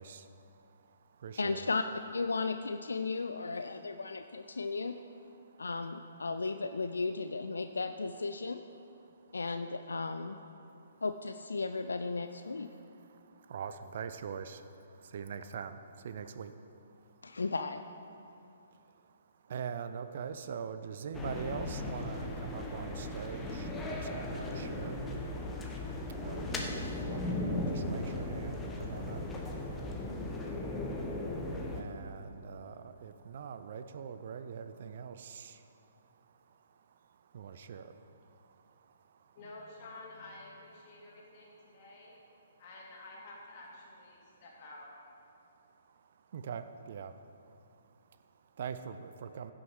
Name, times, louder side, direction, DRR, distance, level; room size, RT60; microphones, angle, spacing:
voice 1, 0.0-1.7 4.5-4.6 5.3-5.7 9.0-9.3 10.6-11.0 12.5-17.3 18.2-39.4 40.8-42.6 44.1-44.3 45.5-49.5, right 7 dB, 50° right, 10 dB, 0.5 m, -45 dB
voice 2, 1.4-1.8 2.1-5.0 5.6-8.6 9.3-10.4 11.0-12.7 17.2-17.8, left 3 dB, 70° left, 8 dB, 0.4 m, -35 dB
sound 1, 21.1-31.8, left 1 dB, 10° left, 1.0 m, -37 dB
voice 3, 39.3-42.1 42.6-44.9, left 2 dB, 40° left, -4 dB, 2.8 m, -50 dB
16.0 x 6.3 x 4.7 m, 2.8 s
figure-of-eight pair, 125°, 0 cm